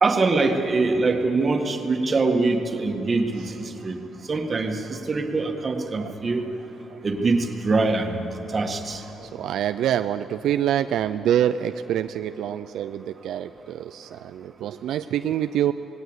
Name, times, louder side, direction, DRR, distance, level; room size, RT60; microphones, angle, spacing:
voice 1, 0.0-4.0 4.3-6.4 7.0-8.3 8.5-9.0, right 3 dB, 35° right, 5 dB, 1.7 m, -23 dB
voice 2, 5.8-6.1 6.9-7.0 9.1-15.7, right 10 dB, 80° right, 10 dB, 0.4 m, -26 dB
19.0 x 17.5 x 8.1 m, 3.0 s
cardioid pair, 90°, 0 cm